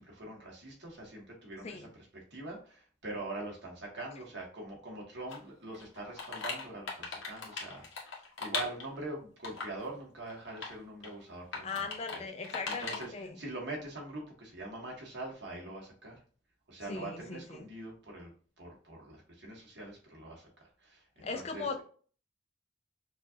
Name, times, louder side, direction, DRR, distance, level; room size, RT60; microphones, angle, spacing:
voice 1, 0.0-12.3 12.6-16.2 16.7-18.3 18.6-21.8, right 2 dB, 60° right, -1 dB, 1.7 m, -44 dB
sound 1, 5.3-5.4 5.7-9.0 9.4-9.8 10.3-10.7 11.0-11.1 11.5-12.2 12.4-13.1, left 4 dB, 85° left, 1.2 m, -39 dB
voice 2, 11.6-13.4 16.9-17.7 21.2-21.8, left 4 dB, 35° left, 5 dB, 0.4 m, -39 dB
6.0 x 2.5 x 2.6 m, 0.42 s
head